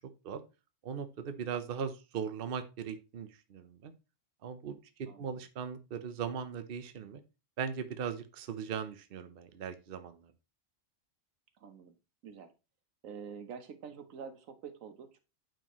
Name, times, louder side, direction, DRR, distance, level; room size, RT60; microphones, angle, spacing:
voice 1, 0.8-3.9 4.4-7.2 7.6-10.3, right 7 dB, 50° right, 10 dB, 0.9 m, -39 dB
voice 2, 5.1-5.4 11.5-12.0 12.2-12.5 13.0-15.2, right 6 dB, 85° right, 10 dB, 1.3 m, -47 dB
9.0 x 4.5 x 3.0 m, 0.29 s
omnidirectional pair, 1.3 m